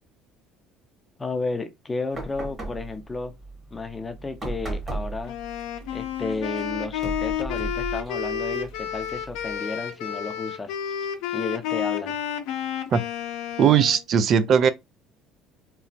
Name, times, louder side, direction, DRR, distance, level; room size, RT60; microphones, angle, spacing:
voice 1, 1.2-3.3 3.7-5.3 5.9-10.7 11.3-12.2, left 3 dB, 20° left, 0.5 m, -32 dB
sound 1, 2.1-9.6, right 3 dB, 30° right, 1.1 m, -37 dB
Wind instrument woodwind instrument, 5.2-14.0, left 9 dB, 80° left, 0.5 m, -31 dB
voice 2, 13.6-14.7, right 7 dB, 50° right, 0.3 m, -18 dB
3.0 x 2.0 x 2.6 m
supercardioid pair, 100°, 0 cm